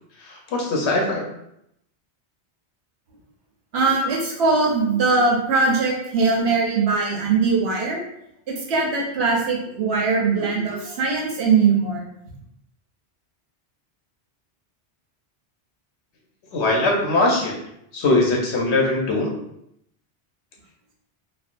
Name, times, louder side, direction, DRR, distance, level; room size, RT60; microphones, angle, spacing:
voice 1, 0.2-1.3 16.5-17.6 17.9-19.3, left 2 dB, 80° left, 0 dB, 1.0 m, -21 dB
voice 2, 3.7-8.0 8.5-12.0, right 4 dB, 70° right, -2 dB, 1.0 m, -21 dB
3.3 x 2.1 x 2.5 m, 0.76 s
omnidirectional pair, 1.1 m